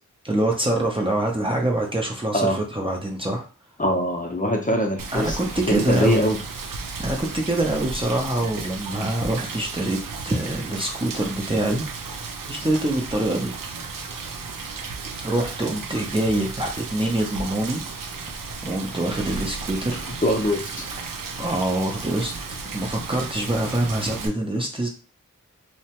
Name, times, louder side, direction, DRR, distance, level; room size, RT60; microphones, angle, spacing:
voice 1, 0.2-3.4 5.1-6.3 7.0-10.0 10.3-11.8 12.1-13.5 15.2-18.2 18.6-20.0 21.4-22.3 22.6-24.9, right 1 dB, 15° right, 0 dB, 0.6 m, -25 dB
voice 2, 3.8-5.4 5.7-6.4 20.2-20.9, equal, 25° left, 1 dB, 0.7 m, -23 dB
Rain, 5.0-24.3, right 4 dB, 80° right, 0.5 m, -34 dB
2.8 x 2.1 x 2.9 m, 0.35 s
cardioid pair, 55°, 33 cm